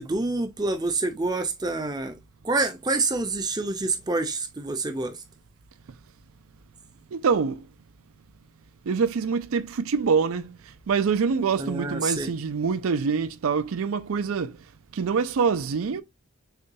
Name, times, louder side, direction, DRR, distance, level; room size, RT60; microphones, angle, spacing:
voice 1, 0.0-2.2 2.4-5.2 11.6-12.3, right 3 dB, 20° right, 0.5 m, -27 dB
voice 2, 7.1-7.6 8.9-10.6 10.9-14.5 14.9-16.0, right 5 dB, 75° right, 0.4 m, -25 dB
6.7 x 2.3 x 2.6 m
head